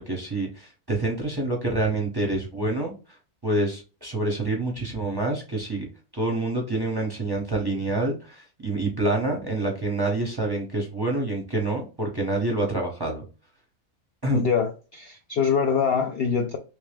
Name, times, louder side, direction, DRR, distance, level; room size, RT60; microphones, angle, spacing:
voice 1, 0.0-3.2 3.4-5.9 6.1-13.2 14.2-14.4, right 2 dB, 20° right, 0.6 m, -27 dB
voice 2, 14.3-16.6, left 6 dB, 75° left, 0.5 m, -24 dB
3.4 x 2.7 x 3.3 m
omnidirectional pair, 1.6 m